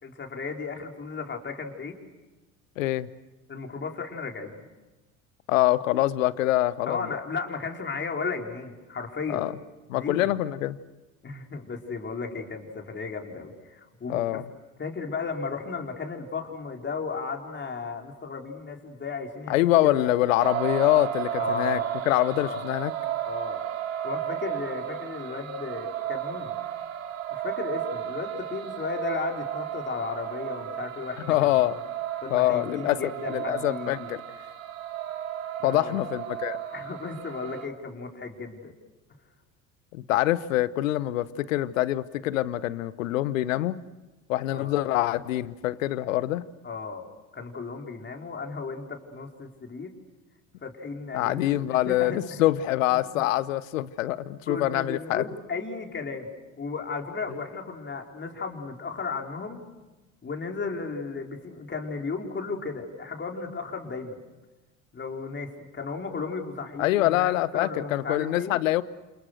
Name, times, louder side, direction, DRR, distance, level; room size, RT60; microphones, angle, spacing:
voice 1, 0.0-1.9 3.5-4.6 6.8-9.5 9.9-10.3 11.2-14.5 14.8-20.2 21.4-22.0 22.3-22.7 23.3-23.6 24.0-26.5 27.3-31.8 32.2-34.1 35.6-36.1 36.7-38.7 44.5-44.8 46.6-47.1 47.3-49.9 50.6-52.4 53.1-53.2 54.5-56.3 56.6-59.6 60.2-64.2 64.9-68.6, left 4 dB, 30° left, 2 dB, 4.6 m, -35 dB
voice 2, 2.8-3.1 5.5-7.0 9.3-9.5 9.9-10.8 14.1-14.4 19.5-21.8 22.1-22.9 31.3-31.7 32.3-34.2 35.6-36.6 39.9-43.8 44.3-46.4 51.1-55.2 66.8-68.8, left 15 dB, 75° left, 17 dB, 1.1 m, -25 dB
sound 1, 20.4-37.7, right 11 dB, 85° right, 1.9 m, -34 dB
29.0 x 28.0 x 6.6 m, 1.1 s
hypercardioid pair, 75°, 39 cm